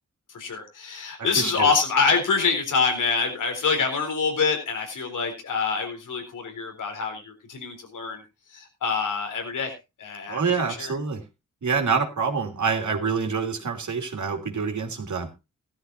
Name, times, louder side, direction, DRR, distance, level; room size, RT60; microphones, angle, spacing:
voice 1, 0.3-8.2 8.5-9.7 10.0-10.9, left 5 dB, 90° left, 5 dB, 3.9 m, -26 dB
voice 2, 1.4-1.7 10.3-11.2 11.6-15.3, right 5 dB, 70° right, 4 dB, 2.9 m, -26 dB
15.5 x 13.0 x 2.6 m, 0.25 s
cardioid pair, 65°, 30 cm